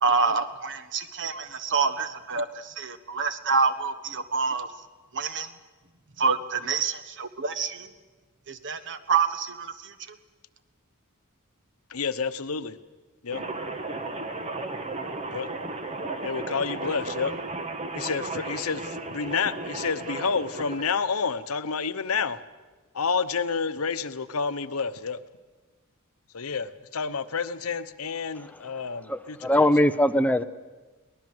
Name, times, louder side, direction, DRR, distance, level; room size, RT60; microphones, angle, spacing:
voice 1, 0.0-4.7 5.1-5.5 6.2-7.9 8.5-10.2, right 5 dB, 60° right, 11 dB, 1.3 m, -27 dB
voice 2, 11.9-12.8 13.2-13.4 15.3-15.5 16.2-17.3 17.9-22.4 22.9-25.2 26.3-29.7, left 5 dB, 85° left, 12 dB, 0.9 m, -29 dB
sound 1, 13.3-20.8, right 2 dB, 30° right, 1.5 m, -34 dB
voice 3, 29.1-30.4, left 1 dB, 5° left, 10 dB, 0.7 m, -21 dB
23.0 x 18.5 x 7.9 m, 1.3 s
head